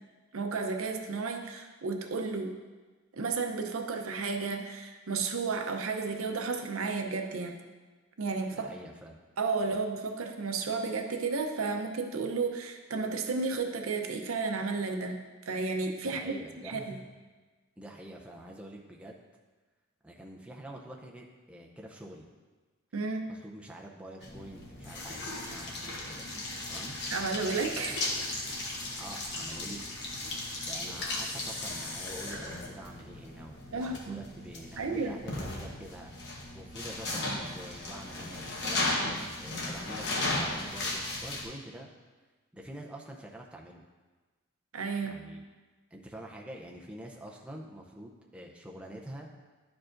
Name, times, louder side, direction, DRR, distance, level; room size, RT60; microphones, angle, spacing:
voice 1, 0.3-2.6 3.1-7.6 8.2-8.7 9.4-16.4 16.6-17.0 22.9-23.3 27.1-28.1 33.7-34.2 34.8-35.2 44.7-45.2, right 4 dB, 75° right, 4 dB, 0.6 m, -32 dB
voice 2, 8.5-9.2 9.7-9.8 16.0-17.1 17.8-19.2 20.0-22.3 23.3-26.3 26.7-27.0 29.0-29.9 30.7-36.3 36.5-41.9 42.5-43.8 45.0-45.4 45.9-49.3, right 1 dB, 5° right, -1 dB, 0.5 m, -46 dB
sound 1, 24.2-41.5, left 2 dB, 55° left, 1.1 m, -36 dB
10.5 x 4.7 x 2.5 m, 1.3 s
head